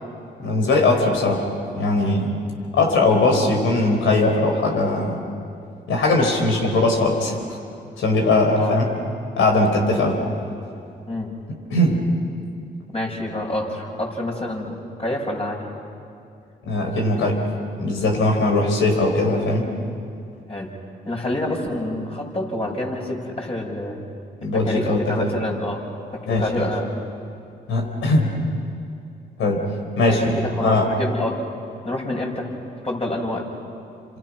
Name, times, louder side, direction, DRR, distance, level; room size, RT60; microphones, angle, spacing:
voice 1, 0.4-1.5 1.7-2.4 2.7-5.2 5.9-7.4 8.0-8.9 9.4-10.2 11.7-12.1 16.6-17.4 17.8-19.7 24.4-25.3 26.3-26.7 27.7-28.3 29.4-29.6 30.0-30.3 30.6-30.9, left 2 dB, 80° left, 2 dB, 4.2 m, -20 dB
voice 2, 12.9-15.7 20.5-20.7 21.1-24.0 24.5-25.8 26.1-26.9 30.1-31.4 31.8-32.5 32.8-33.5, left 1 dB, 30° left, -1 dB, 7.0 m, -27 dB
29.5 x 26.5 x 6.2 m, 2.5 s
supercardioid pair, 50°, 20 cm